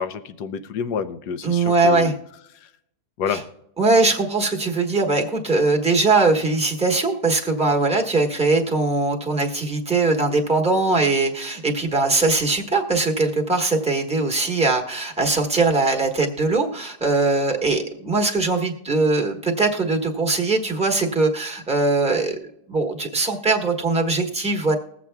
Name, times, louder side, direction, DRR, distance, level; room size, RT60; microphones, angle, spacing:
voice 1, 0.0-2.1 2.6-2.7 3.2-3.4, left 6 dB, 85° left, 10 dB, 1.3 m, -28 dB
voice 2, 1.4-2.1 3.3-3.4 3.8-22.4 22.7-24.7, right 3 dB, 5° right, 2 dB, 1.1 m, -21 dB
21.0 x 7.4 x 2.3 m, 0.81 s
omnidirectional pair, 1.7 m